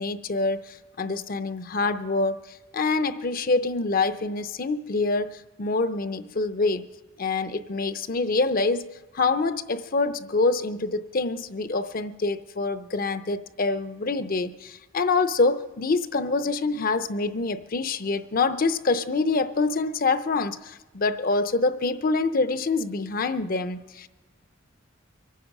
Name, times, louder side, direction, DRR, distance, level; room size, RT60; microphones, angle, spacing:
voice 1, 0.0-2.4 2.7-6.9 7.2-24.1, left 3 dB, 45° left, 12 dB, 0.6 m, -26 dB
24.0 x 9.3 x 5.9 m, 1.1 s
head